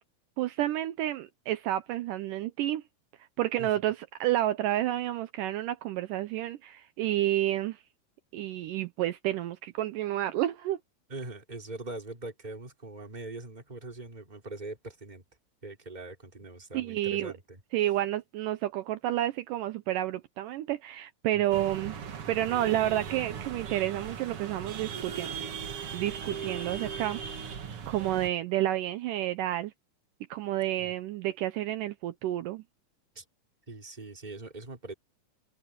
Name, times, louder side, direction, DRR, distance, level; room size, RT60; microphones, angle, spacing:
voice 1, 0.4-2.8 3.4-7.8 8.3-10.8 16.7-17.3 17.7-22.0 22.3-25.6 25.9-27.2 27.9-29.7 30.3-32.6, right 13 dB, 75° right, 2.2 m, -30 dB
voice 2, 11.1-15.2 15.6-17.6 21.3-21.7 30.8-30.9 33.1-33.2 33.7-34.9, right 2 dB, 15° right, 2.9 m, -42 dB
sound 1, 21.5-28.3, right 7 dB, 50° right, 2.1 m, -38 dB
omnidirectional pair, 4.1 m